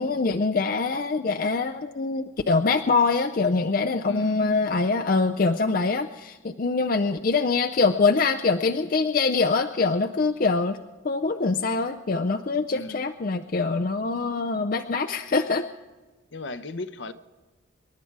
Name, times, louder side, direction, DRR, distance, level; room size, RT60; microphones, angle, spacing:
voice 1, 0.0-10.8 11.0-15.7, left 4 dB, 45° left, 6 dB, 0.5 m, -24 dB
voice 2, 4.1-4.7 12.7-13.1 16.3-17.1, left 2 dB, 65° left, 12 dB, 0.8 m, -36 dB
26.5 x 11.5 x 4.7 m, 1.2 s
head